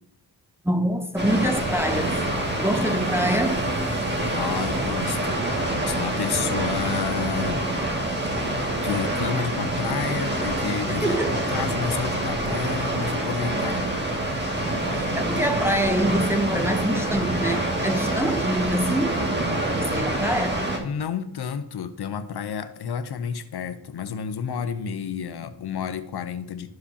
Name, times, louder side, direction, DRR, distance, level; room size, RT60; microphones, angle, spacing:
voice 1, 0.6-2.1 2.6-3.7 10.9-11.4 14.9-19.2 19.6-20.6, right 1 dB, 5° right, 0.7 m, -25 dB
Water, 1.2-20.8, right 1 dB, 25° right, 2.1 m, -26 dB
voice 2, 4.3-5.4 5.9-7.7 8.4-13.9 20.8-26.7, left 7 dB, 70° left, 0.8 m, -30 dB
13.0 x 4.9 x 2.8 m
cardioid pair, 65°, 41 cm